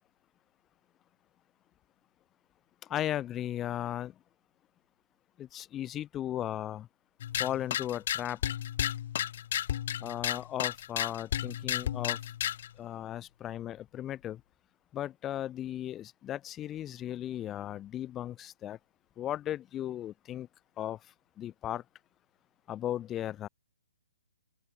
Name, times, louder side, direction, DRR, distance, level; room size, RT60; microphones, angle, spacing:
voice 1, 2.9-4.1 5.4-6.9 7.4-8.4 10.0-12.2 12.8-14.4 14.9-18.8 19.2-20.5 20.8-21.0 21.4-21.8 22.7-23.5, left 12 dB, 10° left, 2.2 m, -36 dB
sound 1, 7.2-12.7, left 11 dB, 40° left, 0.7 m, -33 dB
open air
hypercardioid pair, 170°, 0 cm